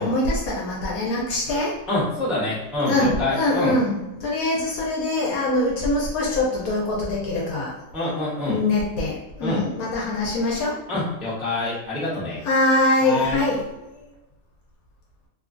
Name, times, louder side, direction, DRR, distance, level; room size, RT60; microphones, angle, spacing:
voice 1, 0.0-1.7 2.9-7.7 8.5-10.7 12.5-13.6, left 2 dB, 70° left, -3 dB, 1.0 m, -23 dB
voice 2, 1.9-3.8 7.9-8.6 9.4-9.7 10.9-12.4 13.0-13.4, left 2 dB, ahead, -9 dB, 0.4 m, -26 dB
3.0 x 2.3 x 2.5 m, 1.0 s
omnidirectional pair, 1.9 m